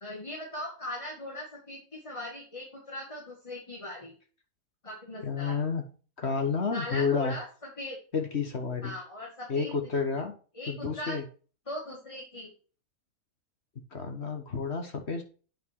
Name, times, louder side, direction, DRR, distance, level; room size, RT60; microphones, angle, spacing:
voice 1, 0.0-4.2 4.8-5.6 6.7-7.5 7.8-8.0 8.8-9.7 10.5-11.2 11.7-12.5, left 1 dB, 20° left, -1 dB, 2.0 m, -39 dB
voice 2, 5.2-5.8 6.2-7.4 8.1-9.0 9.5-10.3 10.7-11.2 13.9-15.2, left 5 dB, 50° left, 5 dB, 1.5 m, -30 dB
9.0 x 6.1 x 4.6 m, 0.37 s
omnidirectional pair, 1.5 m